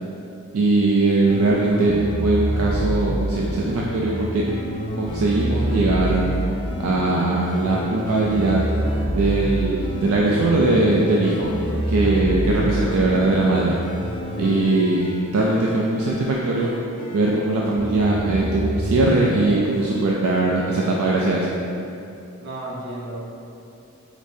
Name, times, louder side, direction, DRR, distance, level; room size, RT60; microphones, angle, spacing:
voice 1, 0.5-4.4 5.0-6.2 6.8-8.6 9.1-11.5 11.9-13.8 14.4-16.7 17.1-21.5, right 2 dB, 75° right, -3 dB, 0.4 m, -20 dB
sound 1, 1.3-17.2 17.8-20.0, equal, 20° left, 0.4 m, -27 dB
voice 2, 11.4-11.9 12.4-13.1 14.4-14.5 22.4-23.2, right 1 dB, 50° right, -6 dB, 1.0 m, -36 dB
5.1 x 3.1 x 2.7 m, 2.8 s
head